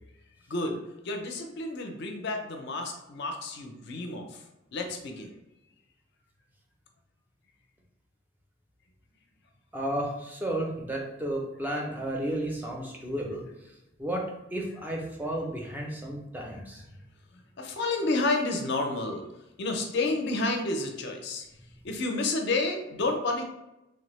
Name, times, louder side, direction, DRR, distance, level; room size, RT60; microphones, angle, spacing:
voice 1, 0.5-0.8 1.0-4.4 4.7-5.3 17.3-19.3 19.6-21.5 21.8-23.4, left 2 dB, 55° left, 3 dB, 0.5 m, -30 dB
voice 2, 9.7-13.5 14.0-16.8, right 1 dB, 10° right, 0 dB, 0.4 m, -33 dB
3.2 x 2.0 x 3.0 m, 0.95 s
head